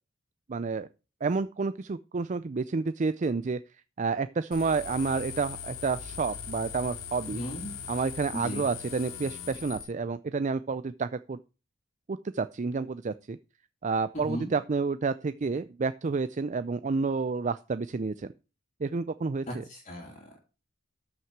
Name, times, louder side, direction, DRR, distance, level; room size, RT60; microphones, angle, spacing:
voice 1, 0.5-0.9 1.2-3.6 4.0-7.4 7.9-11.4 12.1-13.4 13.8-18.3 18.8-19.6, right 4 dB, 35° right, 13 dB, 0.4 m, -30 dB
sound 1, 4.5-9.8, left 7 dB, 85° left, 2.4 m, -40 dB
voice 2, 7.3-7.7 8.3-8.7 14.1-14.5 19.5-20.4, equal, 35° left, -2 dB, 2.8 m, -37 dB
13.0 x 5.9 x 4.7 m, 0.32 s
head